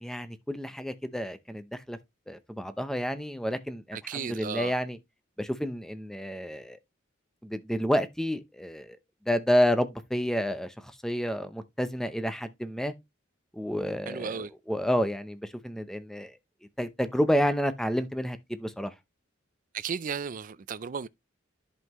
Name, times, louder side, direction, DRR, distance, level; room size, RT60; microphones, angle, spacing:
voice 1, 0.0-2.0 2.3-5.0 5.4-6.8 7.4-9.0 9.3-12.9 13.5-16.4 16.8-18.9, equal, ahead, 0.7 m, -30 dB
voice 2, 3.9-4.7 14.1-14.5 19.7-21.1, right 6 dB, 40° right, 0.4 m, -34 dB
11.0 x 5.6 x 3.0 m
head